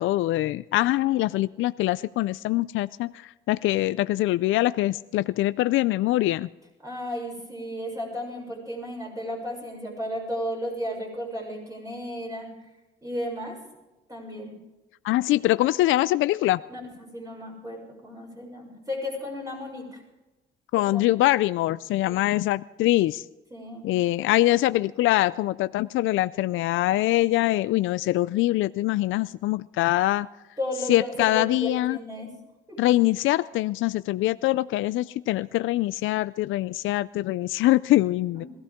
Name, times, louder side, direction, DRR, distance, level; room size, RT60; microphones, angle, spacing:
voice 1, 0.0-6.5 15.0-16.6 20.7-23.2 23.8-30.3 30.9-32.0 32.8-38.4, left 16 dB, 80° left, 15 dB, 0.4 m, -23 dB
voice 2, 6.8-12.5 13.0-13.6 14.1-14.5 16.7-20.0 20.8-21.2 22.0-22.3 23.5-23.9 30.6-32.3 32.7-32.8 38.3-38.5, equal, 15° right, -1 dB, 6.6 m, -34 dB
21.5 x 15.5 x 3.7 m, 1.0 s
cardioid pair, 90°, 20 cm